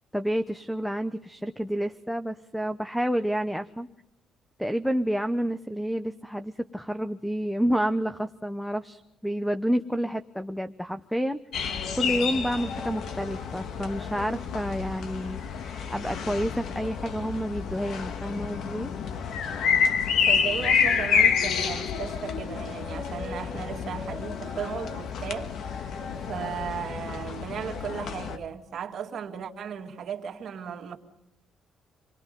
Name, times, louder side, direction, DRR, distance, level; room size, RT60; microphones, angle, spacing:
voice 1, 0.1-3.9 4.6-11.4 12.0-15.4 15.9-18.9, equal, ahead, 0.9 m, -29 dB
sound 1, 11.5-28.4, left 6 dB, 70° left, 1.9 m, -29 dB
voice 2, 20.3-31.0, right 7 dB, 55° right, 2.4 m, -36 dB
28.5 x 21.0 x 5.3 m
cardioid pair, 115°, 0 cm